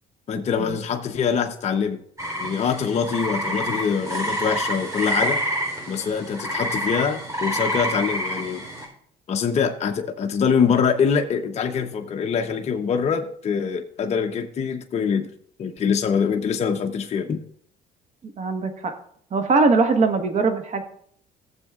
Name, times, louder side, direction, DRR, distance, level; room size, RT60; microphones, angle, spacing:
voice 1, 0.3-2.0 2.4-5.4 5.9-8.6 9.3-15.3 15.6-17.4, left 6 dB, 40° left, 5 dB, 0.8 m, -24 dB
sound 1, 2.2-8.9, equal, 20° right, 3.6 m, -28 dB
voice 2, 18.4-18.9 19.3-20.8, right 4 dB, 45° right, 6 dB, 1.3 m, -21 dB
16.0 x 7.2 x 2.4 m, 0.63 s
cardioid pair, 110°, 17 cm